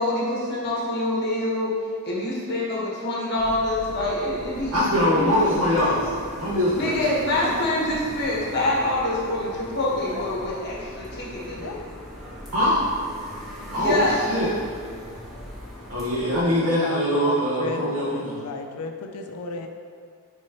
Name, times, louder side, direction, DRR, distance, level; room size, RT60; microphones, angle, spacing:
voice 1, 0.0-1.7 2.0-5.9 6.7-11.8 13.7-14.2, left 1 dB, 50° left, -5 dB, 1.5 m, -26 dB
sound 1, 3.4-16.4, equal, ahead, 1.6 m, -40 dB
voice 2, 4.7-6.1 6.4-7.0 12.5-12.8 13.7-14.5 15.9-18.4, left 1 dB, 80° right, -9 dB, 1.5 m, -22 dB
voice 3, 11.5-11.9 16.6-17.0 17.3-17.8 18.2-19.7, left 3 dB, 85° left, 4 dB, 0.5 m, -34 dB
8.6 x 4.5 x 3.1 m, 2.1 s
head